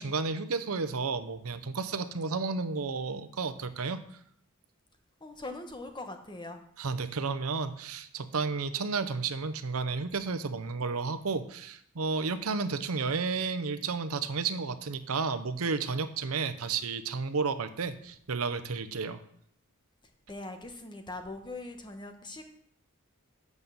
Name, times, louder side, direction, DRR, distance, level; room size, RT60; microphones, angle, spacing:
voice 1, 0.0-4.0 6.8-19.2, right 4 dB, 80° right, 11 dB, 0.7 m, -32 dB
voice 2, 5.2-6.6 20.3-22.5, left 2 dB, 20° left, 6 dB, 1.1 m, -41 dB
8.1 x 5.4 x 6.9 m, 0.66 s
head